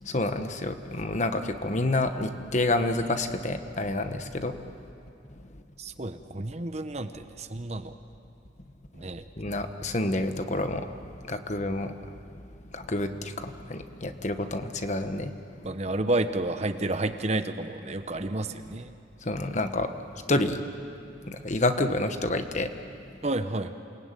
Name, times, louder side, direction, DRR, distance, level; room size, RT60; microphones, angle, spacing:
voice 1, 0.0-4.6 9.4-10.9 11.3-12.1 12.7-15.3 19.2-19.9 20.3-20.6 21.3-22.7, left 2 dB, 40° left, 8 dB, 1.2 m, -28 dB
voice 2, 5.8-7.9 9.0-9.2 15.6-18.9 23.2-23.8, right 2 dB, 35° right, 9 dB, 0.9 m, -30 dB
28.5 x 19.0 x 9.1 m, 2.6 s
head